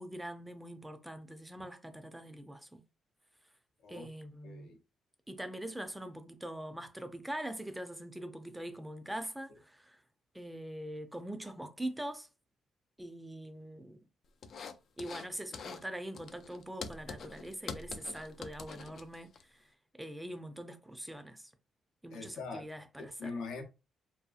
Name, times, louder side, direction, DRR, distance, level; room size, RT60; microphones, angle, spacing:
voice 1, 0.0-2.8 3.9-4.7 5.3-10.0 10.3-12.3 13.0-14.0 15.0-19.7 19.9-21.5 22.0-23.3, right 1 dB, 5° right, 0.5 m, -43 dB
voice 2, 4.4-4.8 22.1-22.7 23.0-23.6, left 4 dB, 85° left, 0.7 m, -42 dB
sound 1, 14.4-15.3 15.5-15.9 16.1-19.4, left 5 dB, 55° left, 0.3 m, -45 dB
2.7 x 2.3 x 2.4 m
cardioid pair, 90°, 0 cm